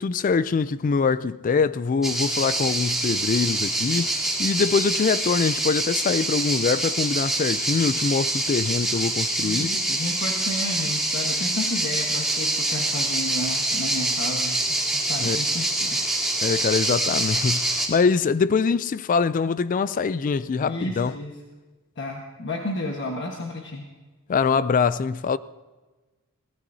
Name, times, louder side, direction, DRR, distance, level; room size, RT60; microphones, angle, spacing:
voice 1, 0.0-9.7 15.2-15.4 16.4-21.1 24.3-25.4, left 5 dB, 35° left, 0.3 m, -23 dB
sound 1, 2.0-17.9, right 2 dB, ahead, 2.3 m, -25 dB
voice 2, 9.4-16.0 20.6-21.4 22.0-23.9, left 1 dB, 55° left, 1.4 m, -32 dB
23.5 x 17.0 x 2.7 m
head